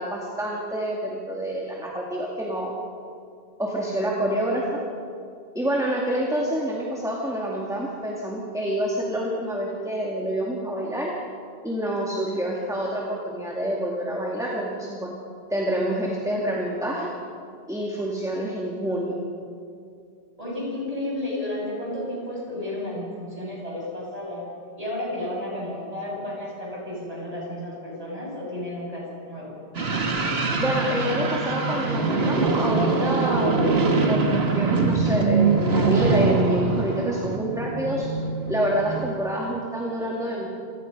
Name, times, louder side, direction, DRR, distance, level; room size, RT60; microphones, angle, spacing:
voice 1, 0.0-2.8 3.6-4.8 5.5-11.1 11.6-15.1 15.5-17.1 17.7-19.2 30.6-33.7 34.1-38.1 38.5-40.5, equal, 5° right, -3 dB, 2.3 m, -27 dB
voice 2, 20.4-24.5 24.8-29.6 40.0-40.1, left 1 dB, 35° right, -4 dB, 7.2 m, -32 dB
sound 1, 29.7-39.1, right 4 dB, 75° right, 1.9 m, -23 dB
27.0 x 18.0 x 5.5 m, 2.3 s
omnidirectional pair, 1.1 m